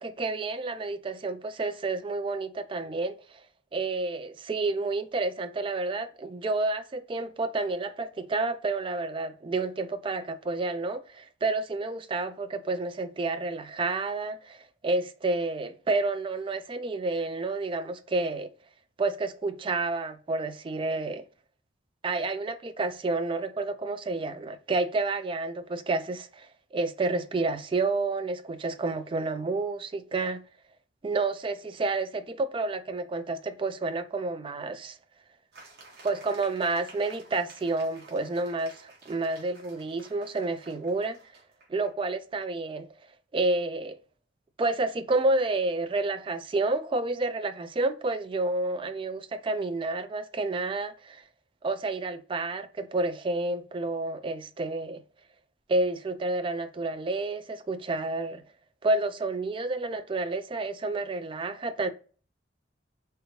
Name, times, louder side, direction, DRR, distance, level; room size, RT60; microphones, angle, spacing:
voice 1, 0.0-3.4 3.7-14.6 14.8-18.5 19.0-21.2 22.0-30.4 31.0-35.0 36.0-41.2 41.7-42.9 43.3-44.0 44.6-51.2 51.6-55.0 55.7-58.4 58.8-61.9, right 3 dB, 25° right, 0.3 m, -30 dB
sound 1, 35.5-41.9, right 3 dB, 55° right, 1.2 m, -53 dB
3.3 x 2.8 x 2.9 m
head